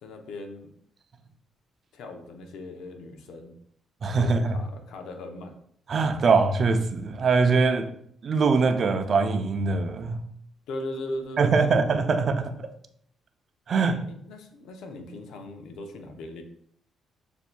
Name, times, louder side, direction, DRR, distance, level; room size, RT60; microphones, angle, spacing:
voice 1, 0.0-0.7 1.9-3.5 4.2-5.5 7.7-7.8 10.7-11.7 14.1-16.4, left 1 dB, 80° left, 0.6 m, -38 dB
voice 2, 4.0-4.6 5.9-7.9 8.2-10.2 11.4-12.6 13.7-14.1, right 4 dB, 50° right, 0.5 m, -22 dB
6.8 x 2.6 x 2.2 m
cardioid pair, 90°, 0 cm